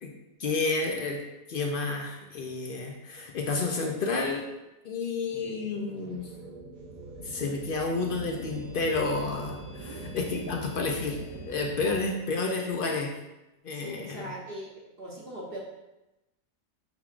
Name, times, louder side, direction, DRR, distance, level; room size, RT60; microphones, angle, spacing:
voice 1, 0.4-1.2 1.5-4.5 4.8-6.3 7.2-11.2 11.5-13.1 13.6-14.2, left 3 dB, 70° left, 2 dB, 0.5 m, -30 dB
sound 1, 5.3-12.0, right 2 dB, 85° right, 1.1 m, -42 dB
voice 2, 9.7-10.0 13.7-14.7 15.0-15.6, right 1 dB, 50° right, -3 dB, 0.9 m, -40 dB
5.8 x 3.6 x 2.4 m, 0.97 s
omnidirectional pair, 1.4 m